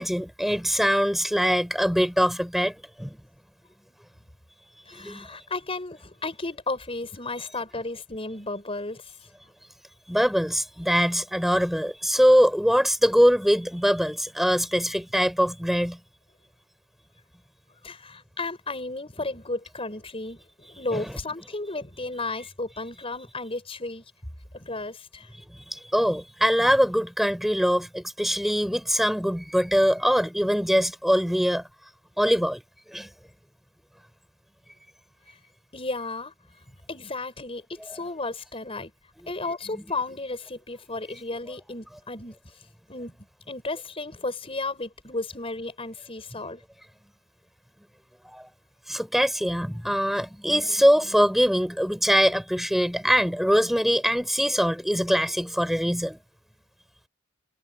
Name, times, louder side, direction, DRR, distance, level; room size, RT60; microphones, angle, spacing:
voice 1, 0.0-3.2 4.9-5.4 10.1-16.0 20.9-21.1 25.5-31.6 32.2-32.6 32.9-33.1 39.7-39.8 48.2-48.5 48.9-56.2, equal, ahead, 5.1 m, -23 dB
voice 2, 4.9-9.2 17.7-24.0 24.5-25.3 35.3-35.4 35.7-36.3 36.9-38.9 39.3-42.4 42.9-46.6, left 2 dB, 25° left, 5.5 m, -34 dB
head